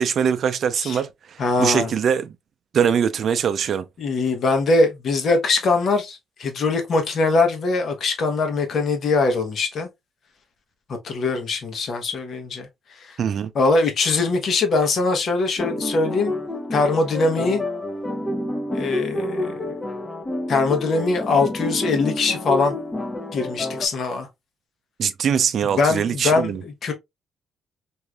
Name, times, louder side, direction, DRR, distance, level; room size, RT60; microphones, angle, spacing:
voice 1, 0.0-2.3 2.7-3.9 13.2-13.5 25.0-26.6, right 7 dB, 60° right, 0.4 m, -22 dB
voice 2, 1.4-1.9 4.0-9.9 11.0-13.2 13.5-16.4 16.7-17.6 18.7-19.8 20.5-22.7 23.3-24.3 25.8-26.9, left 3 dB, 60° left, 1.0 m, -22 dB
sound 1, 15.6-23.9, left 1 dB, 25° left, 0.7 m, -29 dB
3.2 x 2.6 x 2.3 m
cardioid pair, 90°, 0 cm